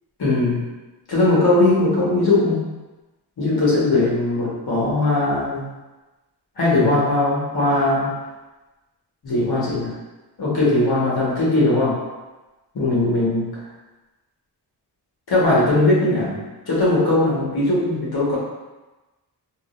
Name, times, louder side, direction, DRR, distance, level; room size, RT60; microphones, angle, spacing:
voice 1, 0.2-0.6 1.1-2.6 3.4-5.7 6.6-8.2 9.2-10.0 10.4-12.0 12.7-13.5 15.3-18.4, left 2 dB, 60° left, -7 dB, 1.2 m, -19 dB
3.7 x 2.0 x 2.4 m, 1.1 s
wide cardioid pair, 130°, 42 cm